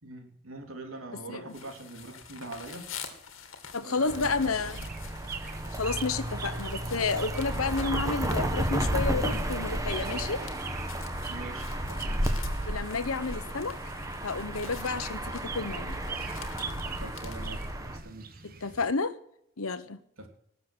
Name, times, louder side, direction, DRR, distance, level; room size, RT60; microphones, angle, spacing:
voice 1, 0.0-2.9 3.8-4.6 11.3-12.4 16.9-18.4 20.2-20.3, right 2 dB, 75° right, 4 dB, 3.6 m, -43 dB
sound 1, 1.5-17.7, left 7 dB, 65° left, 2.6 m, -48 dB
voice 2, 3.7-4.8 5.7-10.4 12.7-13.7 14.2-16.0 18.4-19.1 19.6-20.0, left 4 dB, 85° left, 14 dB, 1.2 m, -31 dB
sound 2, 3.9-18.9, right 6 dB, 45° right, 1.3 m, -44 dB
sound 3, 4.1-18.0, right 1 dB, 15° right, 1.6 m, -33 dB
19.5 x 7.8 x 6.4 m, 0.72 s
head